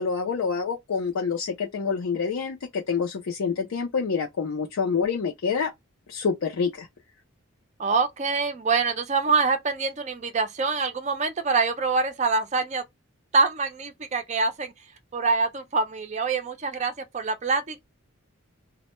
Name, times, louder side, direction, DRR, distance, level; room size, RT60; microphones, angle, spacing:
voice 1, 0.0-5.7 6.1-6.9, left 5 dB, 75° left, 0.4 m, -27 dB
voice 2, 7.8-12.8 13.3-14.7 15.1-17.8, right 4 dB, 30° right, 0.4 m, -25 dB
2.1 x 2.0 x 2.9 m
head